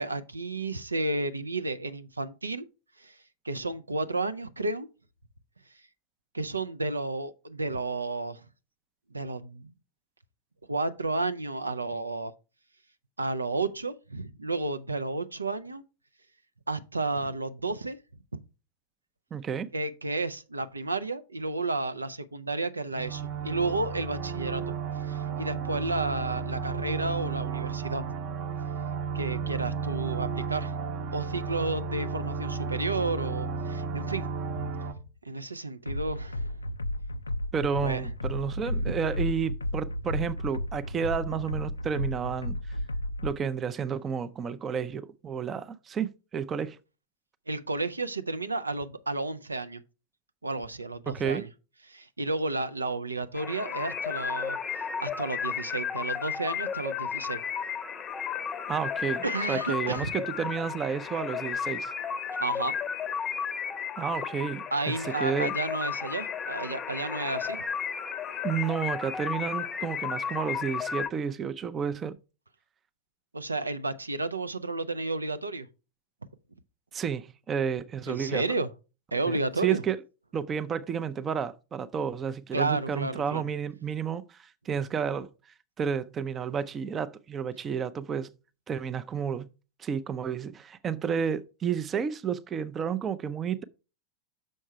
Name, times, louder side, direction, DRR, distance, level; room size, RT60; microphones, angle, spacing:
voice 1, 0.0-2.7 3.0-3.2 3.4-4.9 6.3-8.4 9.1-9.7 10.7-12.3 13.2-15.8 16.7-18.0 19.7-24.7 25.0-28.0 29.1-30.7 31.1-34.2 34.5-34.7 35.2-36.6 37.8-38.1 38.8-38.9 47.5-49.8 50.4-51.5 51.9-54.6 55.0-57.4 59.2-60.1 62.4-62.8 64.7-67.6 73.3-75.7 78.1-78.7 79.1-79.8 82.5-83.4, right 2 dB, 80° right, 0.4 m, -32 dB
voice 2, 19.3-19.7 37.5-42.6 43.2-46.8 51.1-51.5 58.7-61.9 64.0-65.5 68.4-72.2 76.9-78.4 79.3-80.0 80.3-85.3 85.8-88.3 88.7-89.5 89.8-93.6, right 7 dB, 25° right, 0.5 m, -31 dB
sound 1, 22.9-34.9, right 5 dB, 40° right, 0.9 m, -33 dB
sound 2, 35.9-43.4, left 1 dB, 80° left, 0.3 m, -33 dB
sound 3, 53.3-71.1, left 7 dB, 25° left, 0.7 m, -33 dB
6.5 x 5.4 x 4.5 m
figure-of-eight pair, 90°, 0 cm